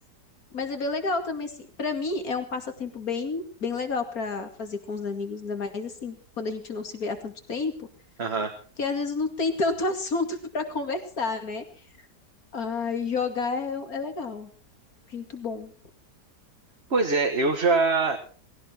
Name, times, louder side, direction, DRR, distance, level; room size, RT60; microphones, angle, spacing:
voice 1, 0.5-7.9 8.8-11.6 12.5-14.5 15.1-15.7, left 4 dB, 55° left, 6 dB, 2.9 m, -30 dB
voice 2, 8.2-8.5 16.9-18.2, right 3 dB, 40° right, 3 dB, 1.8 m, -23 dB
19.0 x 17.0 x 4.5 m, 0.40 s
omnidirectional pair, 1.8 m